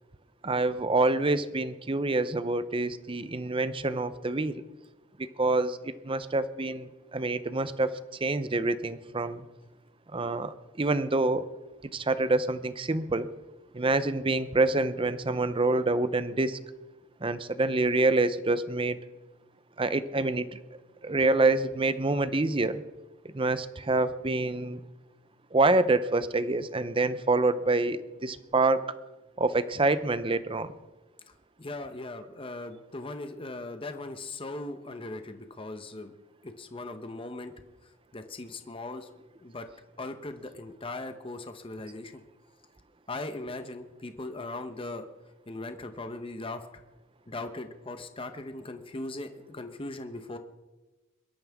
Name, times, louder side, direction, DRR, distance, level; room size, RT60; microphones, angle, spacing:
voice 1, 0.4-4.6 5.2-7.9 8.2-9.4 10.1-11.4 11.9-13.3 13.7-16.6 17.2-19.0 19.8-20.6 21.0-22.8 23.3-24.8 25.5-28.9 29.4-30.7, right 2 dB, 25° right, 13 dB, 0.7 m, -26 dB
voice 2, 31.6-36.1 36.4-37.5 38.1-39.1 39.4-39.7 40.0-42.2 43.1-45.1 45.5-46.6 47.3-50.4, left 2 dB, 25° left, 8 dB, 0.9 m, -39 dB
23.5 x 12.5 x 3.6 m, 1.1 s
head